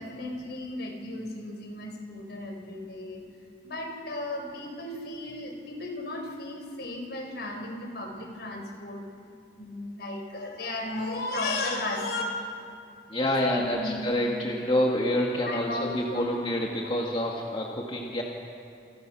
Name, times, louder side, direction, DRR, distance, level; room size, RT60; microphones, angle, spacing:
voice 1, 0.0-3.3 3.6-9.1 9.6-12.2 13.4-14.1 15.4-16.5, left 2 dB, 60° left, 3 dB, 4.9 m, -35 dB
voice 2, 13.1-18.2, left 1 dB, 30° left, -1 dB, 2.2 m, -27 dB
28.5 x 28.0 x 6.4 m, 2.5 s
head